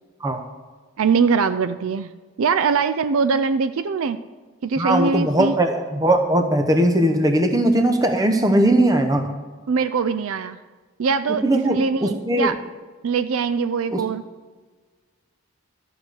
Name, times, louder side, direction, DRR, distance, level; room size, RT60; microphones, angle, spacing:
voice 1, 1.0-2.1 2.4-4.2 4.6-5.5 9.7-10.6 11.0-12.6 13.0-14.2, right 5 dB, 70° right, 12 dB, 0.4 m, -22 dB
voice 2, 4.8-9.3 11.4-12.5 13.9-14.0, right 1 dB, 15° right, 6 dB, 0.8 m, -19 dB
13.0 x 5.0 x 6.4 m, 1.4 s
head